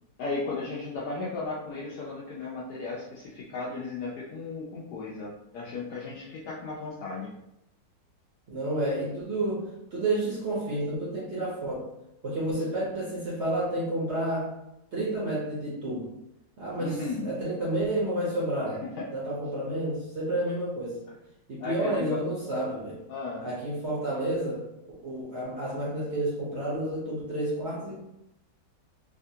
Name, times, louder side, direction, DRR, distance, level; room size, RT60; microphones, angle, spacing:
voice 1, 0.2-7.3 16.8-17.3 19.0-19.1 21.6-22.2 23.1-23.5, left 3 dB, 75° left, -5 dB, 1.0 m, -35 dB
voice 2, 8.5-11.9 12.2-14.6 14.9-16.1 16.6-18.8 19.1-21.0 21.5-23.0 23.4-24.6 25.0-28.0, right 1 dB, 55° right, -6 dB, 0.7 m, -30 dB
3.3 x 2.3 x 2.7 m, 0.86 s
omnidirectional pair, 2.0 m